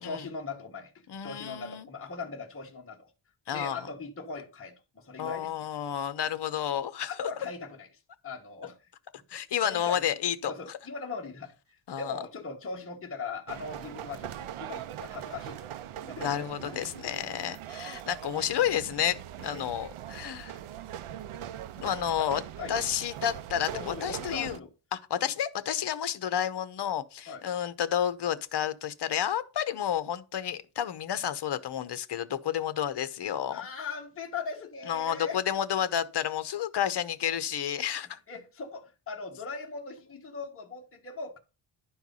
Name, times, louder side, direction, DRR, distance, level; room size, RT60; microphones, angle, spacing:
voice 1, 0.0-0.9 1.2-3.1 3.5-5.5 7.1-7.9 8.2-8.8 9.6-10.0 10.4-11.5 12.0-15.7 16.0-16.9 19.4-19.6 20.3-20.5 22.2-22.3 22.6-22.8 23.7-24.7 27.3-27.4 33.5-35.4 38.3-41.4, left 4 dB, 25° left, 1.5 m, -39 dB
voice 2, 1.1-1.9 3.5-3.8 5.2-7.3 9.3-10.5 11.9-12.2 16.2-20.6 21.8-22.4 22.7-24.6 24.9-33.6 34.8-38.2, left 10 dB, 55° left, 1.0 m, -31 dB
sound 1, 13.5-24.6, right 10 dB, 90° right, 0.7 m, -41 dB
11.5 x 4.6 x 5.4 m
wide cardioid pair, 140°, 48 cm